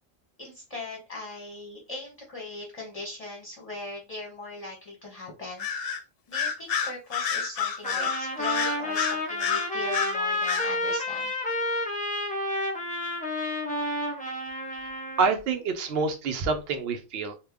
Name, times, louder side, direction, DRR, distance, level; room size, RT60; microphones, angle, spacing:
voice 1, 0.4-5.7 6.3-11.3, left 2 dB, 35° left, -1 dB, 0.8 m, -39 dB
Bird vocalization bird call bird song, 5.6-6.0 6.3-10.2 10.5-10.7, left 7 dB, 65° left, 0.7 m, -28 dB
Trumpet, 7.8-15.3, left 1 dB, 10° left, 0.5 m, -30 dB
voice 2, 15.2-17.4, right 4 dB, 65° right, 5 dB, 0.8 m, -27 dB
2.8 x 2.1 x 3.4 m, 0.28 s
omnidirectional pair, 1.2 m